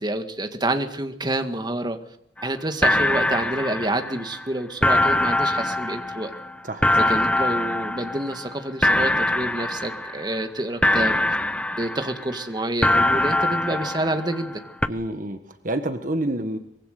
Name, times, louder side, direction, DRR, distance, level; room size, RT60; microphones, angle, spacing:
voice 1, 0.0-2.0 2.4-6.3 7.1-11.2 11.8-14.6, right 1 dB, 25° right, 6 dB, 1.9 m, -28 dB
sound 1, 2.4-2.5 2.8-4.4 4.8-8.5 8.8-10.4 10.8-12.4 12.8-14.5 14.8-14.9, left 1 dB, 5° left, 0.8 m, -23 dB
voice 2, 6.6-7.1 14.9-16.6, right 1 dB, 45° right, 8 dB, 1.5 m, -28 dB
24.0 x 22.5 x 6.7 m, 0.72 s
head